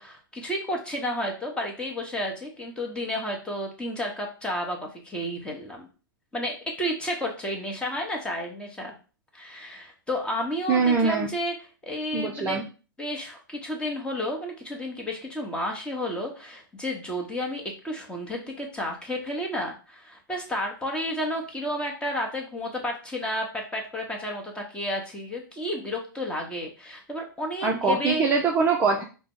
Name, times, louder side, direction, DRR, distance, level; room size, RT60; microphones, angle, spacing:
voice 1, 0.0-5.9 6.3-8.9 9.3-11.5 11.8-12.7 13.0-28.3, equal, 10° left, 1 dB, 1.0 m, -31 dB
voice 2, 10.7-11.3 12.1-12.6 27.6-29.0, right 4 dB, 20° right, 0 dB, 0.5 m, -23 dB
4.7 x 2.1 x 3.7 m, 0.35 s
hypercardioid pair, 115°, 12 cm